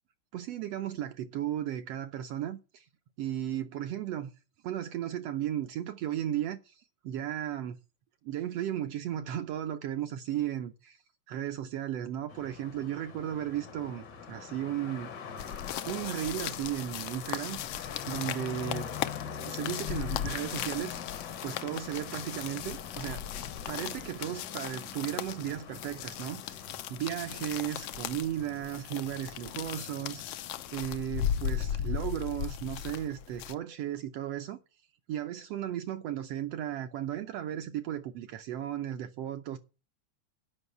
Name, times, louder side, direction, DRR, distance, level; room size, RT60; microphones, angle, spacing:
voice 1, 0.3-2.9 3.2-4.3 4.6-7.8 8.2-11.0 11.3-15.1 15.9-17.6 18.1-18.9 19.4-21.0 21.4-23.2 23.7-26.6 26.9-30.4 30.7-34.6 35.1-39.6, right 11 dB, 75° right, 1.5 m, -35 dB
sound 1, 12.3-31.0, left 7 dB, 60° left, 1.1 m, -44 dB
sound 2, 15.4-33.5, left 10 dB, 80° left, 1.4 m, -37 dB
9.8 x 5.5 x 7.8 m
omnidirectional pair, 3.4 m